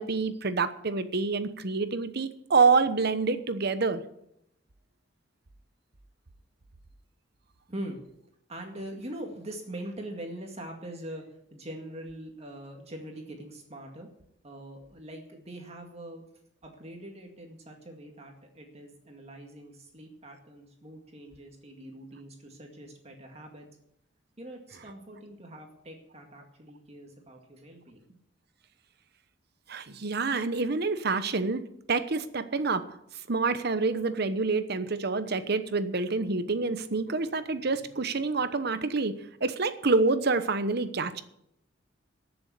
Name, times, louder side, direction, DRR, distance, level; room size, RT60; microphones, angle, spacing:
voice 1, 0.0-4.0 29.7-31.6 31.9-33.0 33.3-39.1 39.4-41.2, right 4 dB, 60° right, 11 dB, 1.0 m, -27 dB
voice 2, 7.7-8.0 8.5-14.1 14.4-16.2 16.6-23.7 24.4-28.1, right 1 dB, 35° right, 2 dB, 2.1 m, -43 dB
14.5 x 7.0 x 8.3 m, 0.77 s
head